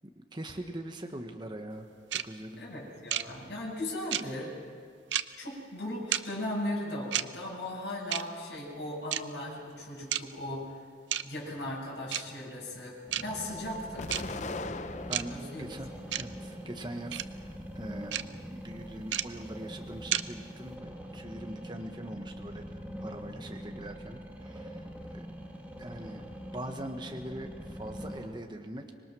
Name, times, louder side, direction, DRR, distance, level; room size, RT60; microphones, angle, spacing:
voice 1, 0.2-2.6 15.1-18.2 18.5-22.6 23.0-24.9 25.1-25.3 25.8-28.9, right 1 dB, 25° right, 4 dB, 1.3 m, -42 dB
sound 1, 2.1-2.2 3.1-3.2 4.1-4.2 5.1-5.2 6.1-6.2 7.1-7.2 8.1-8.2 9.1-9.2 10.1-10.2 11.1-11.2 12.1-12.2 13.1-13.2 14.1-14.2 15.1-15.2 16.1-16.2 17.1-17.2 18.1-18.2 19.1-19.2 20.1-20.2, right 11 dB, 90° right, 0.6 m, -29 dB
voice 2, 2.6-4.5 5.4-10.7 11.2-14.1 15.3-15.7, left 1 dB, 70° left, -5 dB, 7.0 m, -37 dB
sound 2, 13.1-28.3, equal, 10° right, 1.8 m, -43 dB
Explosion, 14.0-15.6 16.2-17.1, left 3 dB, 40° left, 0.6 m, -40 dB
25.5 x 21.5 x 6.2 m, 2.1 s
head